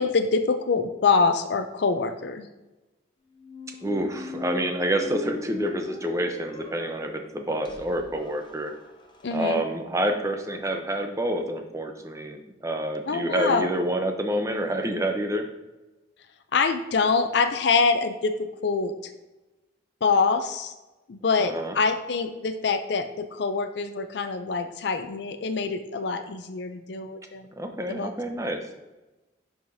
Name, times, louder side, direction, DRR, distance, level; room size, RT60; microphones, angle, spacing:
voice 1, 0.0-2.5 9.2-9.6 13.1-13.7 16.5-18.9 20.0-20.7 21.1-27.5 27.9-28.1, left 4 dB, 65° left, 8 dB, 0.5 m, -25 dB
Squeak, 3.4-9.3, left 2 dB, 25° left, 0.6 m, -39 dB
voice 2, 3.8-8.7 9.3-15.5 21.4-21.8 27.6-28.7, right 1 dB, 15° right, 5 dB, 0.7 m, -28 dB
10.5 x 4.8 x 2.7 m, 1.1 s
head